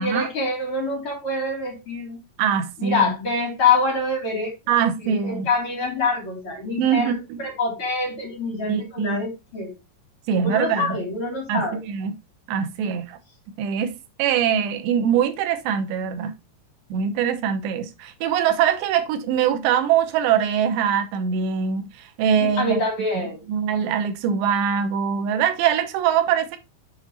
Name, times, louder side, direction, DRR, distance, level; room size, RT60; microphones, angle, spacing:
voice 1, 0.0-2.2 2.8-9.7 10.4-11.8 22.4-23.4, left 3 dB, 35° left, 3.8 m, -25 dB
voice 2, 2.4-3.1 4.7-5.5 6.8-7.4 8.7-9.2 10.3-11.0 11.5-12.1 12.5-13.2 13.6-13.9 14.2-16.3 16.9-21.9 22.2-22.8 23.1-23.2 23.5-26.6, right 8 dB, 90° right, 3.2 m, -23 dB
7.5 x 4.5 x 4.0 m
omnidirectional pair, 4.8 m